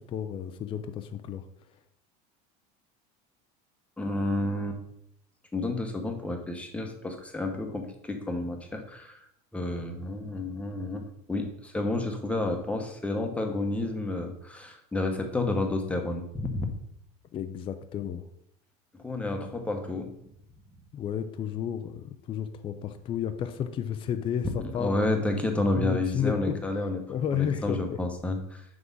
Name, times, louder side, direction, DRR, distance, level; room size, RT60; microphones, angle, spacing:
voice 1, 0.0-1.4 17.3-18.2 20.9-25.1 25.7-26.6 27.1-28.0, left 8 dB, 25° left, 9 dB, 0.4 m, -32 dB
voice 2, 4.0-4.8 5.5-9.2 9.5-16.7 19.0-20.1 24.6-28.6, left 2 dB, 5° left, 4 dB, 0.9 m, -30 dB
6.1 x 4.8 x 5.4 m, 0.75 s
supercardioid pair, 145°, 20 cm